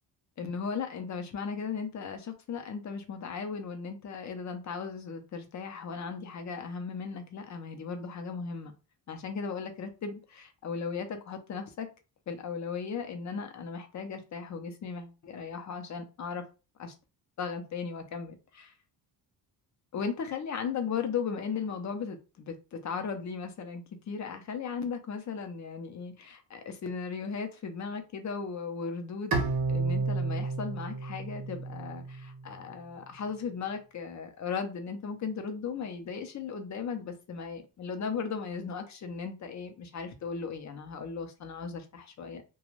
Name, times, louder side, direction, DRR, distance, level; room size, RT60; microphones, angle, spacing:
voice 1, 0.4-8.7 9.1-11.9 12.3-16.4 16.8-16.9 17.4-18.7 19.9-42.4, left 5 dB, 45° left, 0.6 m, -37 dB
Bowed string instrument, 29.3-32.5, right 3 dB, 55° right, 0.8 m, -31 dB
2.5 x 2.3 x 3.0 m
cardioid pair, 120°, 42 cm